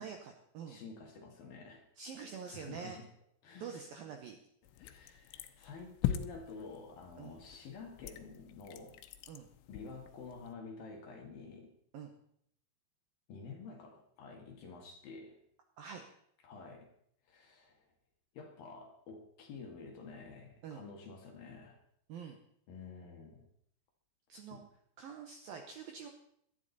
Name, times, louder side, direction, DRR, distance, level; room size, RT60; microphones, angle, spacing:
voice 1, 0.0-0.8 2.0-3.0 3.6-4.4 7.2-7.4 9.3-9.5 11.9-12.1 15.8-16.0 20.6-20.8 22.1-22.4 24.3-24.6 25.0-26.1, right 6 dB, 75° right, 4 dB, 2.2 m, -46 dB
voice 2, 0.7-1.9 2.5-3.0 3.4-3.8 4.8-9.0 9.7-11.7 13.3-15.4 16.4-16.9 17.3-17.8 18.3-21.8 22.7-23.5 24.5-24.6, left 4 dB, 55° left, 2 dB, 3.1 m, -49 dB
sound 1, 4.6-10.5, left 11 dB, 90° left, 3.4 m, -42 dB
17.5 x 13.0 x 4.1 m, 0.71 s
omnidirectional pair, 5.5 m